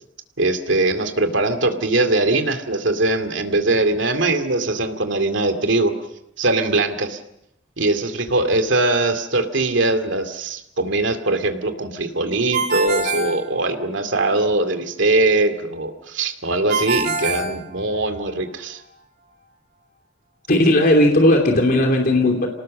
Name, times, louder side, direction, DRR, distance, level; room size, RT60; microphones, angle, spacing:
voice 1, 0.4-5.9 6.4-7.2 7.8-18.8, right 2 dB, 75° right, 7 dB, 2.4 m, -21 dB
Ringtone, 12.5-14.2 16.7-18.3, right 3 dB, 45° right, 7.6 m, -25 dB
voice 2, 20.5-22.5, left 1 dB, 50° left, 2 dB, 3.0 m, -16 dB
27.5 x 19.0 x 6.5 m, 0.80 s
head